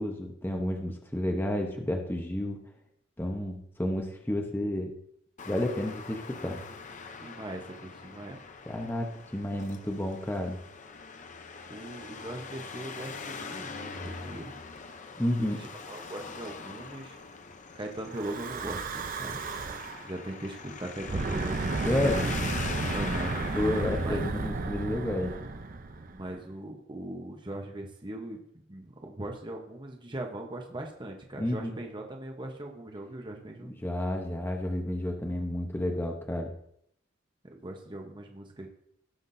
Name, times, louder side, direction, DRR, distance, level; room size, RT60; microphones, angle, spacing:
voice 1, 0.0-2.6 3.2-4.9 5.4-6.6 8.7-10.6 15.2-15.6 21.8-22.2 23.5-25.3 31.4-31.7 33.6-36.5, left 1 dB, 10° left, 2 dB, 0.9 m, -31 dB
Traffic noise roadway noise, 5.4-24.1, left 4 dB, 40° left, 0.7 m, -42 dB
voice 2, 7.2-8.4 11.7-14.6 15.4-17.2 17.7-19.8 20.0-22.3 22.9-23.4 24.0-24.5 26.1-33.7 37.4-38.7, right 1 dB, 25° right, 2 dB, 1.0 m, -40 dB
Breathing / Wind, 18.1-20.1 21.0-26.4, right 3 dB, 45° right, 0.6 m, -33 dB
17.5 x 5.9 x 2.7 m, 0.71 s
head